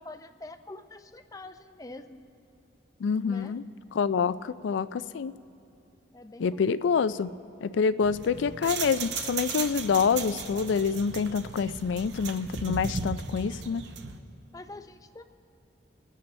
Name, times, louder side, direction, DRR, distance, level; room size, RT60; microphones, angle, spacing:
voice 1, 0.0-2.2 3.2-3.6 6.1-6.6 14.5-15.2, left 2 dB, 20° left, 9 dB, 0.5 m, -45 dB
voice 2, 3.0-3.6 3.9-5.3 6.4-7.3 7.6-13.8, left 6 dB, 80° left, 16 dB, 0.3 m, -27 dB
sound 1, 8.0-14.2, right 5 dB, 70° right, 0.7 m, -36 dB
26.0 x 10.0 x 3.2 m, 2.7 s
head